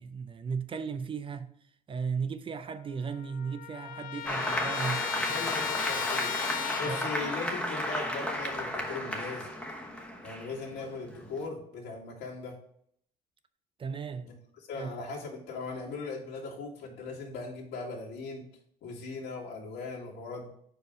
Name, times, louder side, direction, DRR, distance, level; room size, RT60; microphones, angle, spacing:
voice 1, 0.0-1.5 1.9-5.0 6.8-7.1 13.8-14.3 14.8-14.9, right 5 dB, 30° right, 0.5 m, -35 dB
Trumpet, 2.7-2.8 3.0-7.4, left 10 dB, 55° left, 0.5 m, -36 dB
Applause, 4.3-11.5, equal, 5° left, 1.0 m, -33 dB
voice 2, 5.3-6.3 6.8-9.5 10.2-12.6 14.3-14.4 14.7-18.4 18.8-20.5, left 4 dB, 80° left, 2.1 m, -39 dB
4.8 x 4.7 x 5.0 m
cardioid pair, 110°, 17 cm